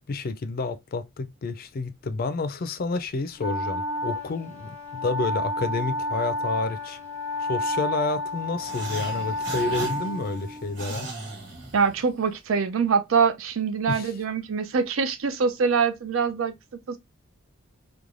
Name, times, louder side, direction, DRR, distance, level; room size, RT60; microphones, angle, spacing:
voice 1, 0.1-7.0 7.4-11.1 13.9-14.1, left 3 dB, 45° left, 0.4 m, -30 dB
Wind instrument woodwind instrument, 3.4-10.9, left 1 dB, 15° right, 1.1 m, -31 dB
sound 1, 8.6-12.3, right 2 dB, 60° right, 1.4 m, -38 dB
voice 2, 11.7-17.0, right 5 dB, 80° right, 0.5 m, -24 dB
3.1 x 2.2 x 2.4 m
head